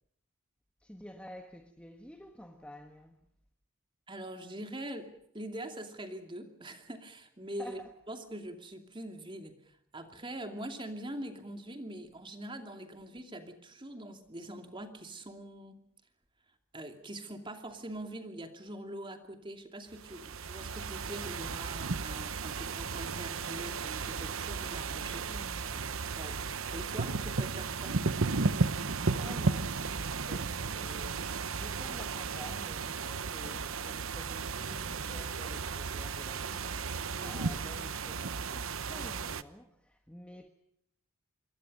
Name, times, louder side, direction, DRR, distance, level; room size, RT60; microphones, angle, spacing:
voice 1, 0.8-3.2 7.6-7.9 25.2-25.8 28.8-36.7 37.2-40.5, equal, 5° left, 1.4 m, -50 dB
voice 2, 4.1-5.1 5.3-7.8 8.1-15.8 16.7-25.3 25.7-25.9 26.2-28.0 37.1-37.4, right 1 dB, 20° right, 2.6 m, -43 dB
sound 1, 19.9-39.4, right 4 dB, 65° right, 0.9 m, -34 dB
26.5 x 22.5 x 5.4 m
head